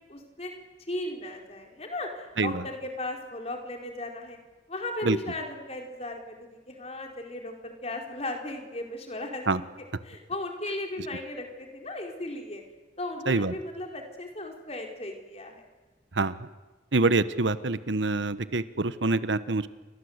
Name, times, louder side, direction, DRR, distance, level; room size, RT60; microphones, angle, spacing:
voice 1, 0.1-0.5 0.9-4.4 4.7-9.7 10.0-12.6 13.0-15.6, left 2 dB, 35° left, 2 dB, 4.4 m, -36 dB
voice 2, 16.1-16.5 16.9-19.7, right 3 dB, 85° right, 14 dB, 1.2 m, -26 dB
29.0 x 24.5 x 8.1 m, 1.3 s
head